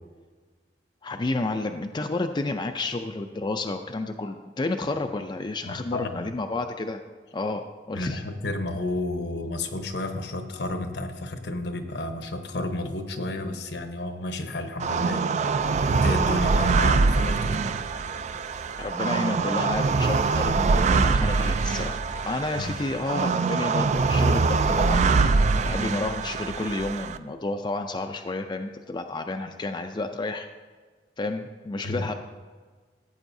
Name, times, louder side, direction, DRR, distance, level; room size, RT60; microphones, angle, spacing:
voice 1, 1.0-7.0 7.3-8.2 18.8-25.3 25.7-30.5 31.2-32.1, left 2 dB, 25° left, 5 dB, 0.4 m, -31 dB
voice 2, 5.6-6.3 7.9-17.7 22.5-22.7 31.8-32.1, left 1 dB, 70° left, 6 dB, 0.9 m, -32 dB
sound 1, 14.8-27.2, right 4 dB, 40° right, 0.4 m, -23 dB
15.5 x 8.2 x 2.7 m, 1.4 s
head